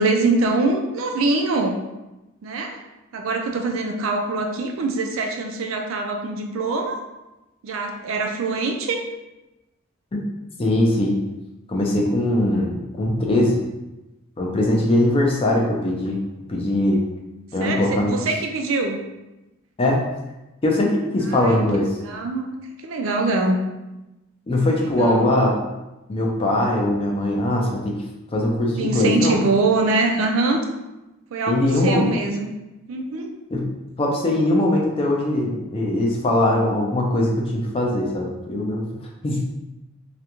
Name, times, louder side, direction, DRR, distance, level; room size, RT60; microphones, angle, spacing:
voice 1, 0.0-1.8 2.4-2.8 3.1-7.0 7.6-9.0 17.6-19.0 21.2-21.6 22.0-22.5 22.8-23.6 24.8-25.3 28.8-30.6 31.3-32.5 32.9-33.3, right 3 dB, 70° right, 3 dB, 0.4 m, -23 dB
voice 2, 10.6-11.2 11.7-13.6 14.4-16.2 16.5-17.0 17.5-18.2 19.8-20.0 20.6-22.0 24.5-25.6 26.1-28.0 28.3-29.4 31.5-32.1 33.5-33.7 34.0-38.8 39.2-39.4, left 1 dB, 25° left, -1 dB, 0.4 m, -21 dB
2.4 x 2.2 x 2.9 m, 1.0 s
head